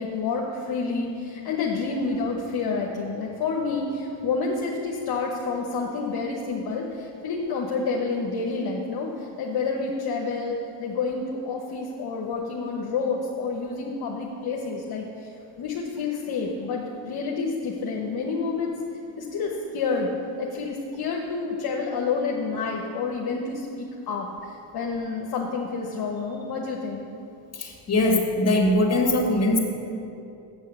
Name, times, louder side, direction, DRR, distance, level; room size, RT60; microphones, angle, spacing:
voice 1, 0.0-9.1 9.4-15.1 15.6-18.7 19.2-20.1 20.4-24.3 24.7-27.0, left 4 dB, 55° left, -1 dB, 1.0 m, -29 dB
voice 2, 27.6-29.6, left 1 dB, 35° left, 1 dB, 1.9 m, -21 dB
8.1 x 6.3 x 6.7 m, 2.7 s
cardioid pair, 95°, 45 cm